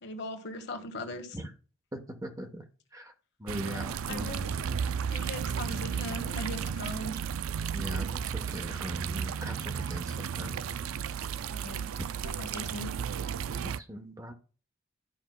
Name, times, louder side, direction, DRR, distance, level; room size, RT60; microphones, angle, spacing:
voice 1, 0.0-1.4 3.6-4.5 5.1-7.1 11.5-11.8 12.2-12.9, left 1 dB, 55° left, 4 dB, 1.5 m, -40 dB
voice 2, 1.9-2.6 2.9-3.1 3.4-4.4 7.7-10.6 13.5-14.3, equal, 15° right, 5 dB, 1.0 m, -40 dB
sound 1, 3.5-13.8, right 7 dB, 80° right, 0.4 m, -34 dB
12.5 x 5.2 x 2.2 m, 0.38 s
head